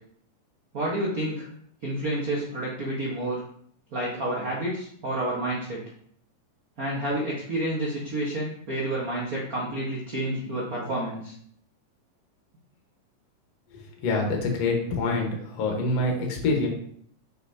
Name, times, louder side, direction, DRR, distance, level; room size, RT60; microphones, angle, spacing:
voice 1, 0.7-1.5 1.8-3.4 3.9-5.8 6.8-11.3, right 1 dB, 85° right, -5 dB, 0.7 m, -29 dB
voice 2, 13.7-16.7, left 2 dB, 60° left, 0 dB, 2.1 m, -26 dB
6.9 x 5.7 x 2.8 m, 0.63 s
omnidirectional pair, 3.8 m